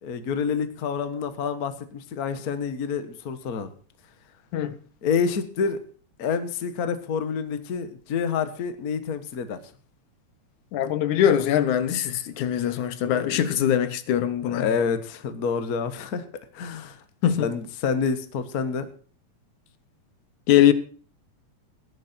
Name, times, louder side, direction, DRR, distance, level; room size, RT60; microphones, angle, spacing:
voice 1, 0.0-3.7 5.0-5.8 6.2-9.6 13.1-13.6 14.5-16.2 16.5-17.0 17.4-18.9, left 6 dB, 45° left, 1.3 m, -28 dB
voice 2, 10.7-14.6 17.2-17.5 20.5-20.7, left 10 dB, 80° left, 2.4 m, -22 dB
17.0 x 10.5 x 4.4 m
omnidirectional pair, 3.4 m